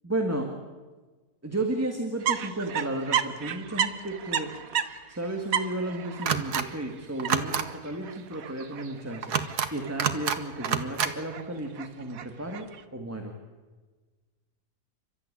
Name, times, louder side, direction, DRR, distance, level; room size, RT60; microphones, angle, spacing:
voice 1, 0.0-0.5 1.4-4.5 5.1-13.3, right 1 dB, 10° right, 3 dB, 1.9 m, -33 dB
sound 1, 2.2-12.8, right 8 dB, 65° right, 1.4 m, -34 dB
sound 2, 6.3-6.6 7.2-7.6 9.2-9.7 10.0-10.4 10.6-11.1, right 7 dB, 80° right, 1.8 m, -27 dB
29.5 x 13.0 x 10.0 m, 1.4 s
omnidirectional pair, 1.7 m